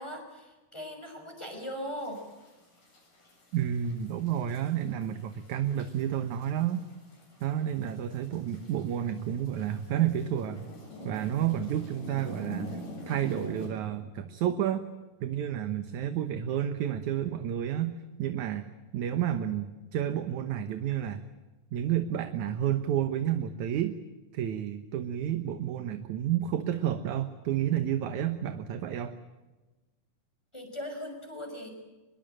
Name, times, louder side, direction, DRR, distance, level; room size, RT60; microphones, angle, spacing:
voice 1, 0.0-2.2 30.5-31.7, equal, 10° left, 4 dB, 6.0 m, -39 dB
sound 1, 2.0-13.7, equal, 80° left, 9.6 m, -47 dB
voice 2, 3.5-6.9 7.4-10.6 11.0-14.8 15.2-17.9 18.2-18.7 18.9-21.2 21.7-24.0 24.3-29.1, right 10 dB, 70° right, 9 dB, 2.5 m, -30 dB
25.5 x 21.5 x 8.9 m, 1.2 s
omnidirectional pair, 3.7 m